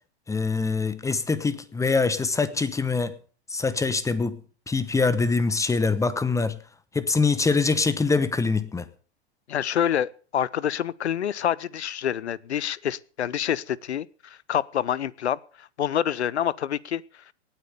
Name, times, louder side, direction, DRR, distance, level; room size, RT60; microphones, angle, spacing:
voice 1, 0.3-3.1 3.5-4.4 4.7-6.6 6.9-8.9, left 4 dB, 10° left, 1.0 m, -24 dB
voice 2, 9.5-17.0, left 9 dB, 85° left, 0.8 m, -27 dB
18.5 x 8.8 x 6.8 m
hypercardioid pair, 115°, 33 cm